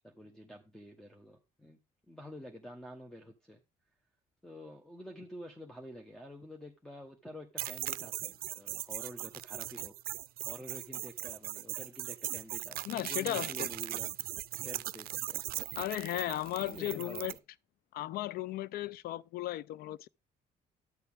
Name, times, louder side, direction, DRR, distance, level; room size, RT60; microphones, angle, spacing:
voice 1, 0.0-1.8 2.1-3.6 4.4-9.9 10.4-14.3 14.6-15.4 16.6-17.4, equal, 5° left, 1.0 m, -49 dB
sound 1, 7.6-17.4, right 15 dB, 80° right, 0.4 m, -39 dB
voice 2, 12.9-13.7 15.8-17.3 17.9-20.1, left 15 dB, 80° left, 0.4 m, -36 dB
10.5 x 6.8 x 3.6 m
cardioid pair, 120°, 15 cm